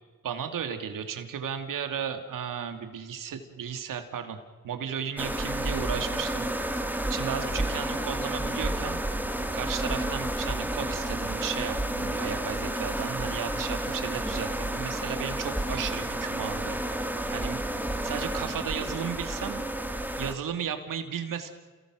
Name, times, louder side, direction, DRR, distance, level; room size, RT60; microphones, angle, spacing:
voice 1, 0.2-4.4 4.6-6.5 7.1-9.0 9.5-16.8 17.3-17.6 18.0-19.6 20.2-21.5, right 8 dB, 75° right, 6 dB, 2.7 m, -34 dB
sound 1, 5.2-20.3, right 1 dB, 5° right, 2.3 m, -31 dB
29.5 x 18.5 x 6.4 m, 1.4 s
cardioid pair, 65°, 33 cm